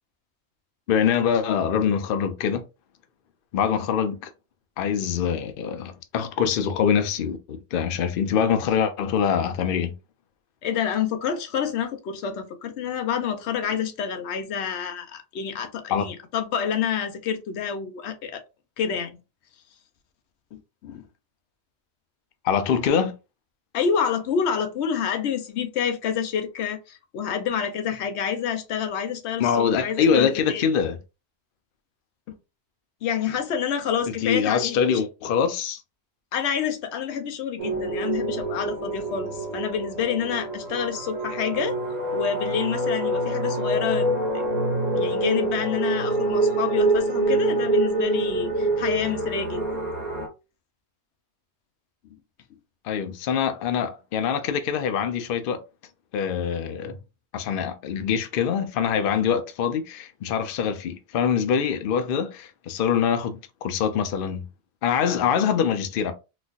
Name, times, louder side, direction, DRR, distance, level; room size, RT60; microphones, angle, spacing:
voice 1, 0.9-2.6 3.5-4.3 4.8-9.9 15.9-16.1 22.4-23.1 29.4-31.0 34.2-35.8 52.8-55.6 56.1-57.0 57.3-64.5 64.8-66.1, left 7 dB, 60° left, 0.7 m, -24 dB
voice 2, 10.6-18.4 18.8-19.1 20.5-21.0 23.7-30.6 32.3-32.4 33.0-35.0 36.3-41.8 42.1-49.6 52.0-52.2, left 7 dB, 90° left, 0.9 m, -28 dB
sound 1, 37.6-50.3, right 2 dB, 40° right, 1.0 m, -26 dB
4.0 x 2.4 x 2.4 m
omnidirectional pair, 1.1 m